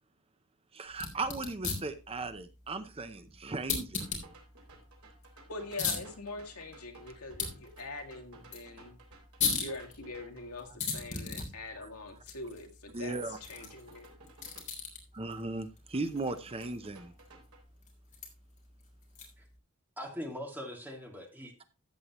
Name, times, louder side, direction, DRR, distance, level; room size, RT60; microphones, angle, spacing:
voice 1, 0.7-4.1 10.7-10.8 12.9-13.4 15.1-17.1, right 3 dB, 25° right, 0.7 m, -37 dB
sound 1, 0.9-19.6, left 5 dB, 35° left, 3.3 m, -40 dB
sound 2, 4.0-10.5 13.2-14.6 15.9-17.6, right 2 dB, 75° right, 3.7 m, -57 dB
voice 2, 5.4-8.9 9.6-14.1, left 2 dB, 75° left, 1.9 m, -43 dB
voice 3, 20.0-21.7, equal, 10° right, 2.2 m, -41 dB
13.5 x 8.4 x 3.0 m
head